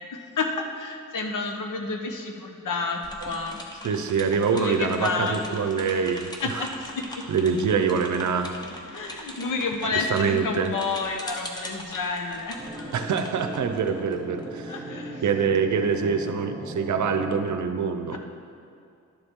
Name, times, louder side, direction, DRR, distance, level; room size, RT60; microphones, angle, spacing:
voice 1, 0.1-3.7 4.5-5.6 5.9-6.0 6.4-7.2 8.7-12.9 14.7-15.2 18.1-18.2, left 4 dB, 70° left, 3 dB, 1.0 m, -30 dB
sound 1, 3.0-14.6, equal, 10° left, 0.9 m, -42 dB
voice 2, 3.8-6.3 6.5-6.6 7.3-8.5 10.1-10.7 12.9-14.8 15.2-18.2, right 6 dB, 65° right, 8 dB, 0.6 m, -25 dB
sound 2, 12.6-17.6, right 1 dB, 15° right, 2.5 m, -37 dB
11.5 x 7.0 x 3.7 m, 2.5 s
wide cardioid pair, 140°, 32 cm